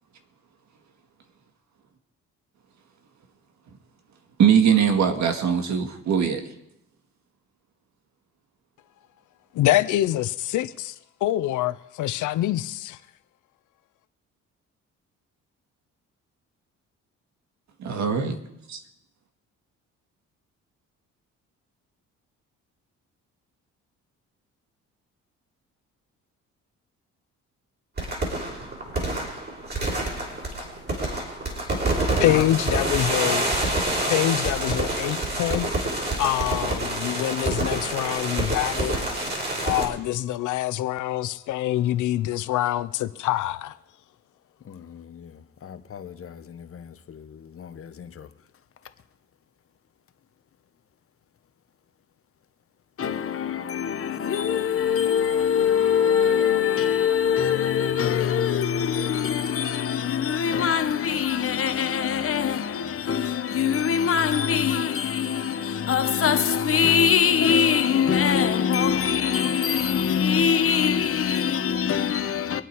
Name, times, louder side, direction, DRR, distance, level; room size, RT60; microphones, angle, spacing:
voice 1, 4.4-6.4 17.8-18.4 18.7-18.8, right 7 dB, 65° right, 2.0 m, -21 dB
voice 2, 9.5-10.9 11.2-13.0 32.2-33.5 34.1-35.7 36.2-39.0 39.6-43.7, left 14 dB, 80° left, 0.8 m, -25 dB
sound 1, 28.0-39.9, right 1 dB, 35° right, 5.2 m, -27 dB
voice 3, 32.0-32.5 32.7-32.8 44.7-45.3 45.6-48.3 53.0-72.6, left 8 dB, 45° left, 1.2 m, -23 dB
25.0 x 9.0 x 4.7 m
cardioid pair, 90°, 30 cm